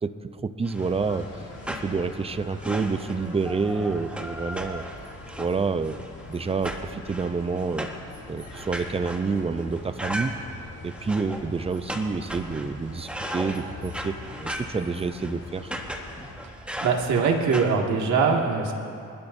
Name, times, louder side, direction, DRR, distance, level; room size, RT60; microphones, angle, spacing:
voice 1, 0.0-1.3 1.7-4.8 5.4-6.0 6.3-7.9 8.3-10.3 10.8-14.2 14.4-15.7, right 4 dB, 20° right, 11 dB, 0.6 m, -28 dB
sound 1, 0.6-17.7, equal, 5° right, 1.4 m, -37 dB
sound 2, 0.8-16.3, left 2 dB, 55° left, 3.1 m, -44 dB
voice 2, 16.8-18.7, right 5 dB, 70° right, 0 dB, 2.1 m, -22 dB
30.0 x 12.5 x 2.7 m, 2.5 s
cardioid pair, 90°, 30 cm